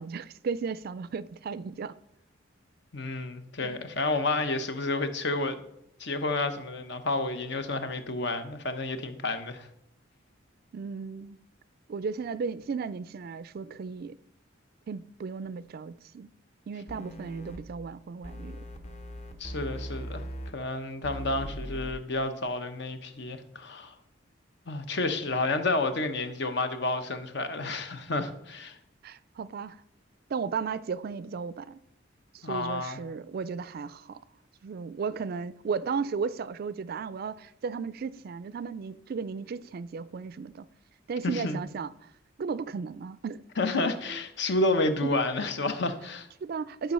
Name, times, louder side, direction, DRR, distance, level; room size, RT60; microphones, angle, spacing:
voice 1, 0.0-2.0 3.6-3.9 10.7-11.4 11.9-14.2 14.9-16.3 16.7-18.6 29.0-29.8 30.3-31.8 32.3-34.2 34.6-40.6 41.1-42.1 42.4-43.4 43.7-43.8 46.4-46.9, right 5 dB, 50° right, 0.3 m, -35 dB
voice 2, 2.9-5.6 6.0-9.7 19.4-20.2 20.5-23.9 24.7-28.8 32.4-33.0 41.2-41.6 43.6-46.3, left 2 dB, 60° left, 0.9 m, -30 dB
sound 1, 16.9-17.6 18.2-20.5 21.0-21.9, equal, 35° left, 1.0 m, -39 dB
11.5 x 5.2 x 5.4 m
head